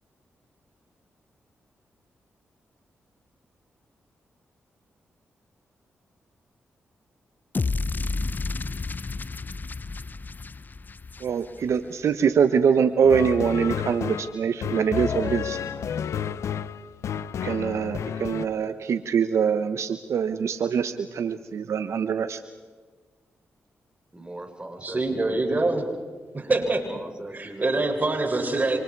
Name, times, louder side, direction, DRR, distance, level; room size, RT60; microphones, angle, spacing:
sound 1, 7.5-11.8, left 3 dB, 40° left, 0.7 m, -31 dB
voice 1, 11.2-15.6 17.4-22.4, right 7 dB, 70° right, 10 dB, 1.0 m, -24 dB
sound 2, 13.0-18.5, left 8 dB, 75° left, 0.7 m, -31 dB
voice 2, 24.1-25.4 26.4-28.0, right 1 dB, 20° right, 5 dB, 4.5 m, -40 dB
voice 3, 24.8-25.8 26.3-26.8 27.3-28.8, right 2 dB, 40° right, 2 dB, 6.9 m, -24 dB
27.5 x 26.5 x 4.7 m, 1.5 s
supercardioid pair, 50°, 5 cm